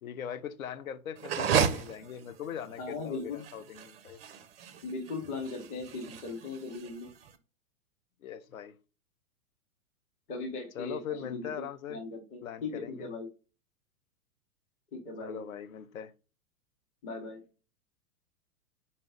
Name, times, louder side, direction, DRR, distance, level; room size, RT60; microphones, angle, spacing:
voice 1, 0.0-4.2 8.2-8.8 10.7-12.0 12.4-13.1 15.2-16.1, left 8 dB, 65° left, 0.6 m, -40 dB
sound 1, 1.2-7.3, right 7 dB, 45° right, 0.4 m, -33 dB
voice 2, 2.8-3.4 4.8-7.1 10.3-13.3 14.9-15.4 17.0-17.4, left 3 dB, 15° left, 0.7 m, -39 dB
4.0 x 2.0 x 3.7 m
figure-of-eight pair, 105°, 44 cm